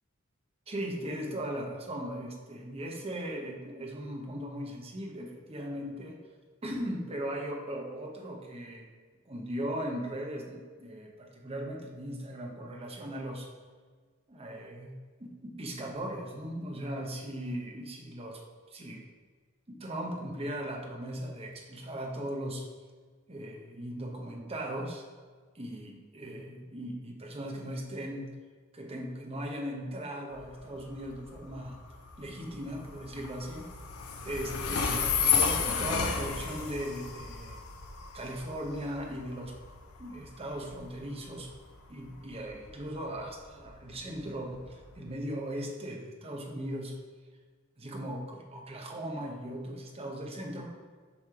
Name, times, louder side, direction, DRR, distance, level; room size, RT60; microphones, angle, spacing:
voice 1, 0.7-6.2 6.6-8.9 9.3-13.5 14.3-18.4 18.7-19.0 19.7-22.6 23.3-25.0 25.5-28.3 28.7-31.8 32.2-33.7 34.2-37.6 38.1-39.5 40.0-41.5 41.9-47.0 47.8-50.7, right 1 dB, 30° right, 0 dB, 0.8 m, -38 dB
Train, 30.3-45.1, left 6 dB, 90° left, 0.7 m, -34 dB
7.2 x 3.3 x 5.6 m, 1.5 s
head